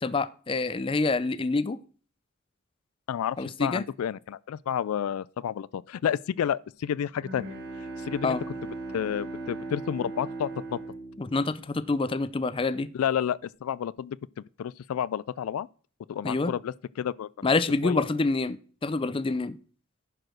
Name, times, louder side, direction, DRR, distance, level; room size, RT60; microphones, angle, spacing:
voice 1, 0.0-1.8 3.4-3.8 8.2-8.4 11.2-12.9 16.2-16.5 17.4-19.6, left 3 dB, 25° left, 0.5 m, -27 dB
voice 2, 3.1-7.5 8.0-8.4 8.9-10.8 12.9-14.2 14.6-15.7 16.1-17.3 17.8-18.1, left 9 dB, 90° left, 0.3 m, -30 dB
Bowed string instrument, 6.9-12.3, right 2 dB, 55° right, 3.8 m, -39 dB
10.5 x 5.0 x 6.3 m
head